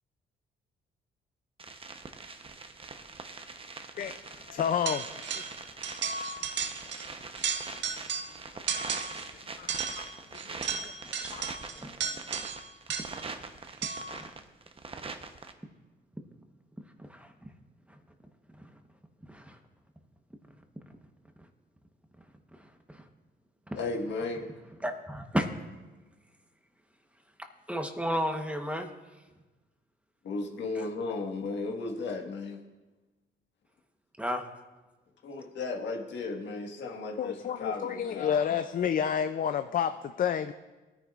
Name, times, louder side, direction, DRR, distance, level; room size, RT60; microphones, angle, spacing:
sound 1, 1.6-15.5, right 4 dB, 30° right, 0.9 m, -43 dB
voice 1, 4.0-5.5 6.3-6.8 9.3-10.1 10.3-11.5 37.2-40.5, left 8 dB, 45° left, 10 dB, 0.4 m, -31 dB
sound 2, 4.9-5.6 5.8-7.1 7.3-8.4 8.7-9.3 9.7-13.3 13.8-14.2, right 6 dB, 65° right, 0.9 m, -34 dB
voice 2, 11.8-12.2 17.0-17.3 18.5-18.7 19.3-19.6 22.5-23.1 23.7-23.8 24.8-25.5 27.4-28.9 30.7-30.9 34.2-34.4, equal, 5° right, 5 dB, 1.0 m, -34 dB
voice 3, 23.8-24.5 30.2-32.6 35.2-38.6, left 3 dB, 65° left, 2 dB, 1.6 m, -35 dB
20.0 x 10.0 x 2.5 m, 1.2 s
cardioid pair, 90°, 20 cm